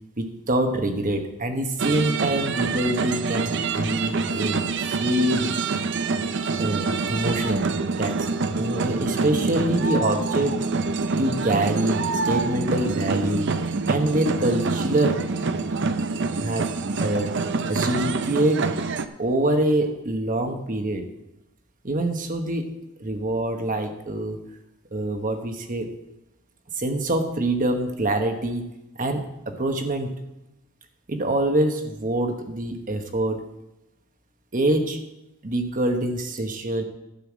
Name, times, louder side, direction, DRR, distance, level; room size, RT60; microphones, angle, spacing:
voice 1, 0.2-4.7 5.0-5.6 6.6-7.7 8.0-10.7 11.2-13.5 13.9-15.2 16.4-16.7 17.0-17.3 17.7-18.7 19.2-21.1 21.8-22.7 23.0-24.4 24.9-25.9 26.7-28.6 28.9-30.2 31.1-33.5 34.5-35.0 35.4-36.8, right 1 dB, 35° right, 5 dB, 1.1 m, -25 dB
sound 1, 1.8-19.1, right 4 dB, 55° right, 0.6 m, -26 dB
12.0 x 5.7 x 7.3 m, 0.93 s
head